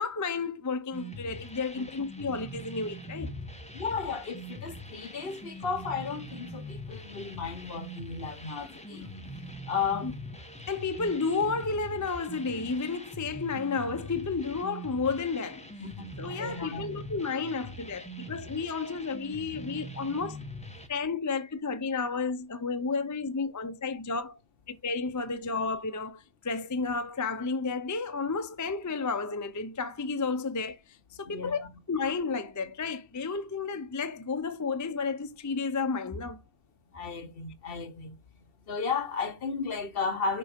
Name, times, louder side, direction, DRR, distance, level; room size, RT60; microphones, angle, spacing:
voice 1, 0.0-3.3 10.0-10.1 10.7-15.7 16.2-20.4 20.9-24.4 24.7-31.6 31.9-36.4, left 4 dB, 25° left, 0.5 m, -32 dB
sound 1, 0.9-20.9, equal, 5° left, 0.9 m, -43 dB
voice 2, 3.7-9.1 9.7-10.1 15.8-16.9 31.3-31.6 36.9-38.2 38.7-40.4, left 5 dB, 55° left, 1.1 m, -34 dB
6.7 x 4.9 x 5.1 m
omnidirectional pair, 1.1 m